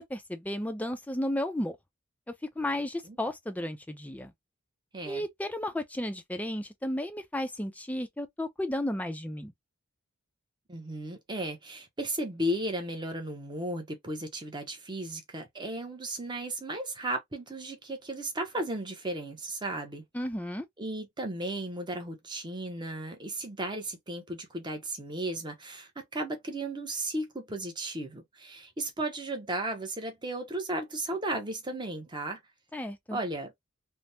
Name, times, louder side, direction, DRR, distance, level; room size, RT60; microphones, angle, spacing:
voice 1, 0.0-1.8 2.6-4.3 5.0-9.5 20.1-20.7 32.7-33.2, left 1 dB, 5° left, 0.4 m, -33 dB
voice 2, 4.9-5.2 10.7-20.0 20.8-32.4 33.1-33.5, right 1 dB, 20° right, 0.7 m, -35 dB
3.3 x 2.0 x 2.7 m
head